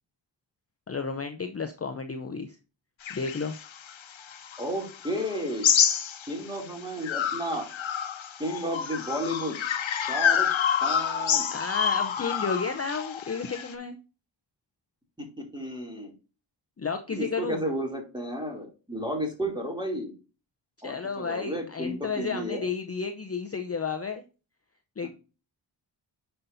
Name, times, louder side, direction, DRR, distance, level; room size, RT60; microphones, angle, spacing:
voice 1, 0.9-2.6 3.1-3.5 11.5-14.0 16.8-17.6 20.8-24.2 25.0-25.1, left 5 dB, 30° left, 7 dB, 0.7 m, -32 dB
sound 1, 3.0-6.6 7.0-13.7, left 8 dB, 85° left, 0.9 m, -28 dB
voice 2, 4.6-5.7 6.3-7.7 8.4-9.6 9.9-10.5 10.8-11.5 15.2-16.1 17.1-20.1 20.8-22.7, equal, 10° right, 0 dB, 2.8 m, -32 dB
9.5 x 5.7 x 2.7 m, 0.33 s
wide cardioid pair, 90°, 45 cm